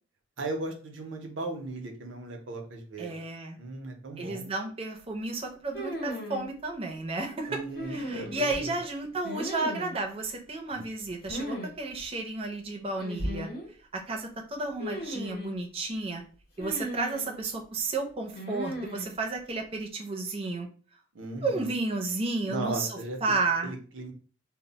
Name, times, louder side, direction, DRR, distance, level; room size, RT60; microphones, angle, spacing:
voice 1, 0.4-3.2 3.6-4.5 7.5-8.8 10.7-10.8 21.1-21.7 22.4-23.2 23.6-24.1, right 2 dB, 85° right, 3 dB, 0.6 m, -37 dB
voice 2, 3.0-3.6 4.2-7.6 7.9-13.5 13.9-16.2 16.6-20.7 21.4-23.7, right 3 dB, 30° right, 3 dB, 0.5 m, -32 dB
sound 1, 5.7-6.5 7.8-8.6 9.2-10.0 11.3-11.7 12.0-12.1 13.0-13.7 14.8-15.6 16.6-17.4 18.4-19.1, equal, 55° left, 0.7 m, -36 dB
2.1 x 2.0 x 3.7 m, 0.39 s
head